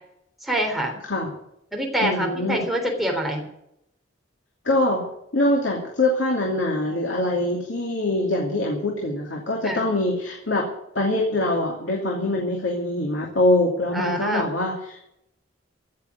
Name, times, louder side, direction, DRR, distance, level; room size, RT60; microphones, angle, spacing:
voice 1, 0.4-1.0 1.7-3.5 9.6-9.9 13.9-14.5, right 1 dB, ahead, 0 dB, 3.6 m, -25 dB
voice 2, 2.0-2.6 4.6-5.1 5.3-10.7 10.9-15.1, left 1 dB, 75° left, 0 dB, 2.7 m, -23 dB
15.5 x 7.0 x 9.5 m, 0.78 s
head